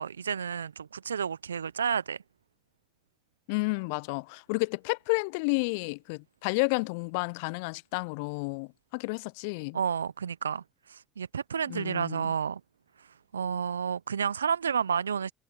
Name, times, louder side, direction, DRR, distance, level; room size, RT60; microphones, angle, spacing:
voice 1, 0.0-2.2 9.7-12.6 13.0-15.3, right 7 dB, 85° right, 0.7 m, -31 dB
voice 2, 3.5-9.8 11.7-12.3, left 30 dB, 70° left, 0.5 m, -31 dB
figure-of-eight pair, 55°, 0 cm